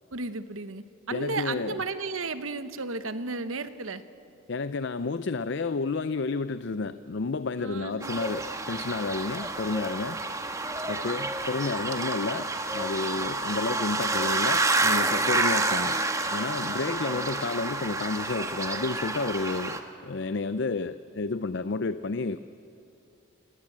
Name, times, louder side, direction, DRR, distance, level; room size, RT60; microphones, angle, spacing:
voice 1, 0.1-4.0 7.6-8.2 10.2-10.3, right 3 dB, 75° right, 11 dB, 1.2 m, -34 dB
voice 2, 1.1-1.8 4.5-10.2 10.9-16.0 16.3-22.4, left 3 dB, 55° left, 13 dB, 0.5 m, -31 dB
sound 1, 8.0-19.8, right 2 dB, 15° right, 1.3 m, -29 dB
29.0 x 19.5 x 8.7 m, 2.8 s
head